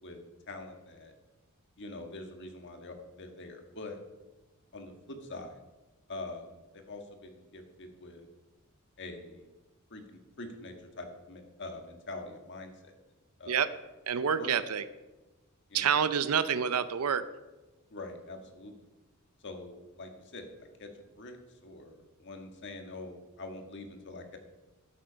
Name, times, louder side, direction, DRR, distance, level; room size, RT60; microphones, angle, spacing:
voice 1, 0.0-1.1 1.8-4.0 4.7-5.6 6.1-8.3 9.0-9.5 9.9-12.9 13.4-13.7 14.4-14.5 15.7-16.0 17.9-18.7 19.4-24.4, left 2 dB, 55° left, 5 dB, 1.6 m, -44 dB
voice 2, 14.1-14.8 15.7-17.2, right 7 dB, 85° right, 13 dB, 0.6 m, -28 dB
13.0 x 8.0 x 5.2 m, 1.1 s
head